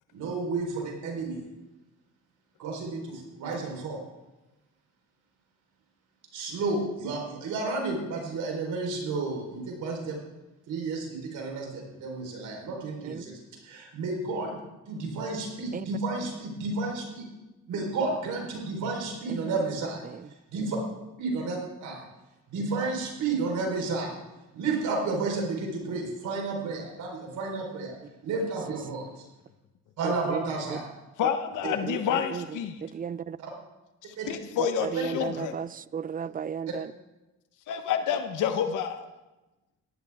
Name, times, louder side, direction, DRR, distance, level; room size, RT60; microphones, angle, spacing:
voice 1, 0.1-1.5 2.6-4.0 6.3-10.2 10.7-14.6 14.9-17.3 17.7-20.0 20.5-20.8 21.2-22.0 22.5-24.1 24.5-27.9 28.2-29.1 30.0-30.9 33.4-33.5 34.2-34.4, right 3 dB, 80° right, 0 dB, 4.4 m, -31 dB
voice 2, 30.0-30.4 30.7-30.8 31.6-33.4 34.6-36.9, right 7 dB, 30° right, 19 dB, 0.4 m, -35 dB
voice 3, 31.2-32.8 34.0-35.5 37.7-39.0, left 8 dB, 85° left, 8 dB, 1.1 m, -29 dB
17.5 x 14.0 x 3.6 m, 1.0 s
cardioid pair, 90°, 30 cm